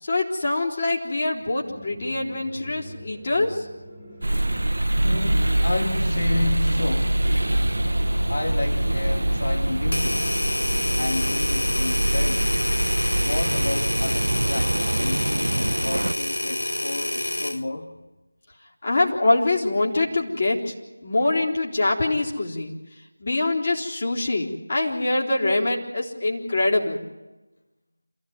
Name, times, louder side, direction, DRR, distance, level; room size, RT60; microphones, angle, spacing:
voice 1, 0.0-3.7 18.8-20.7 21.0-22.8 23.2-27.0, left 2 dB, 35° left, -3 dB, 4.0 m, -24 dB
sound 1, 1.6-18.0, equal, 10° left, 2.3 m, -42 dB
sound 2, 4.2-16.1, right 1 dB, 65° right, 0.9 m, -24 dB
voice 2, 5.0-7.3 8.3-10.5 11.0-12.7 13.2-18.1, left 2 dB, 55° left, 4 dB, 1.8 m, -31 dB
sound 3, 9.9-17.6, left 1 dB, 70° left, 1.1 m, -27 dB
28.0 x 16.0 x 9.6 m, 1.1 s
figure-of-eight pair, 170°, 0 cm